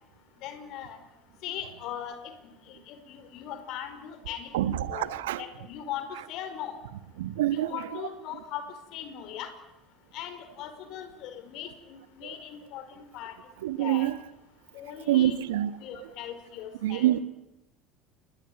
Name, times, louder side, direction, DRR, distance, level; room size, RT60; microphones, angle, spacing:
voice 1, 0.4-1.0 1.4-2.3 2.7-6.8 7.5-8.7 8.9-9.5 10.1-13.4 13.8-14.1 14.7-15.4 15.8-17.1, left 10 dB, 55° left, 5.0 m, -39 dB
voice 2, 4.5-5.4 7.2-7.7 13.6-14.1 15.1-15.7 16.8-17.2, right 13 dB, 70° right, 1.5 m, -25 dB
29.5 x 20.5 x 9.4 m
figure-of-eight pair, 65°, 0 cm